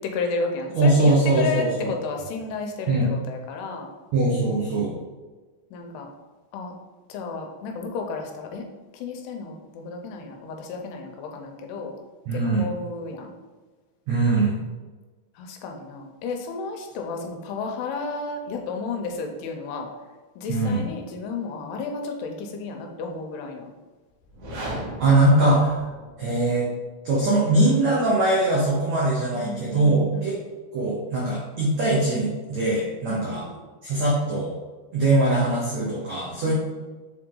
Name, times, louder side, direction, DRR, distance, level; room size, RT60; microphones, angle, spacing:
voice 1, 0.0-3.9 5.7-6.1 6.5-6.7 7.1-8.7 8.9-12.0 12.3-13.3 15.4-19.9 20.4-23.7 29.3-30.4 33.1-33.6 36.5-36.6, left 4 dB, 80° left, 3 dB, 2.7 m, -32 dB
voice 2, 0.7-1.9 2.9-3.1 4.1-4.9 12.3-12.7 14.1-14.6 20.5-20.8 25.0-25.8 26.2-26.7 27.0-30.4 30.7-33.4 33.8-34.5 34.9-36.5, right 2 dB, 90° right, -5 dB, 1.5 m, -21 dB
sound 1, 24.2-26.4, right 1 dB, 55° right, 2.6 m, -36 dB
7.3 x 3.9 x 3.8 m, 1.3 s
omnidirectional pair, 4.8 m